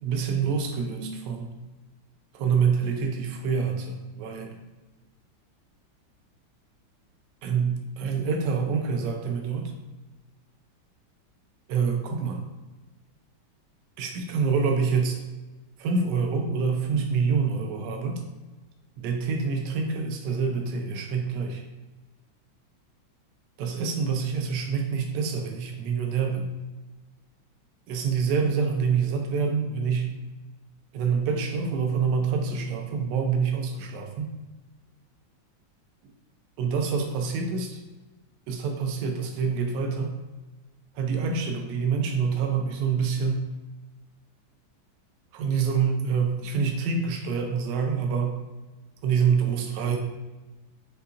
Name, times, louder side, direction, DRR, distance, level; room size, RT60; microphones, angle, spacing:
voice 1, 0.0-1.6 2.3-4.6 7.4-9.7 11.7-12.4 14.0-15.2 15.8-18.2 19.0-21.6 23.6-26.5 27.9-30.1 30.9-34.3 36.6-37.8 38.5-40.1 40.9-43.4 45.3-48.4 49.0-50.0, right 5 dB, 70° right, 4 dB, 1.1 m, -26 dB
5.4 x 2.7 x 2.4 m, 1.2 s
omnidirectional pair, 2.2 m